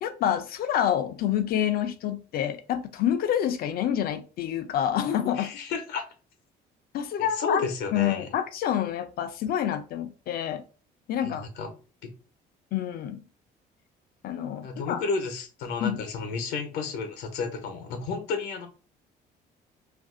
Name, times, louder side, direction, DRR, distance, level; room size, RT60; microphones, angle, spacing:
voice 1, 0.0-5.5 6.9-7.6 7.9-10.6 11.1-11.4 12.7-13.2 14.2-15.0 15.8-16.0, left 10 dB, 65° left, 0.5 m, -27 dB
voice 2, 5.4-6.0 7.2-8.3 11.2-11.7 14.6-18.7, left 4 dB, 85° left, 0.8 m, -32 dB
2.6 x 2.3 x 3.7 m
cardioid pair, 110°, 17 cm